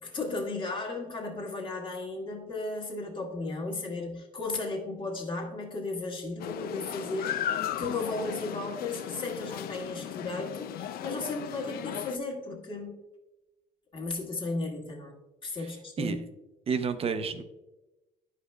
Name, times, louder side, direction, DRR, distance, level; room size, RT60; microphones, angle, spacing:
voice 1, 0.0-13.0 13.9-16.2, left 3 dB, 30° left, -1 dB, 1.6 m, -35 dB
sound 1, 6.4-12.2, left 10 dB, 65° left, 0.4 m, -36 dB
voice 2, 16.7-17.4, right 5 dB, 35° right, 10 dB, 0.6 m, -30 dB
11.0 x 5.0 x 2.2 m, 1.0 s
cardioid pair, 110°, 17 cm